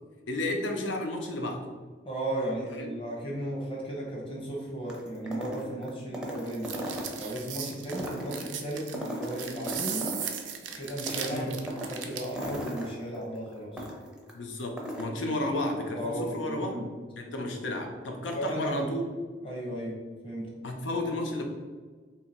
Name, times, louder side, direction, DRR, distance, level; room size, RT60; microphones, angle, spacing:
voice 1, 0.3-1.6 2.8-2.9 11.3-11.6 14.3-16.8 17.2-19.0 20.6-21.4, left 1 dB, 90° left, 3 dB, 0.6 m, -32 dB
voice 2, 2.0-6.8 7.2-10.1 10.8-11.5 11.9-13.9 15.9-16.8 18.3-18.9 19.4-20.5, right 1 dB, 30° left, -3 dB, 1.0 m, -35 dB
sound 1, 4.9-7.5 7.8-10.5 10.8-14.3 14.6-15.1, equal, 5° right, 0.6 m, -37 dB
sound 2, 6.5-12.4, right 8 dB, 80° right, 0.5 m, -37 dB
2.8 x 2.8 x 4.3 m, 1.4 s
head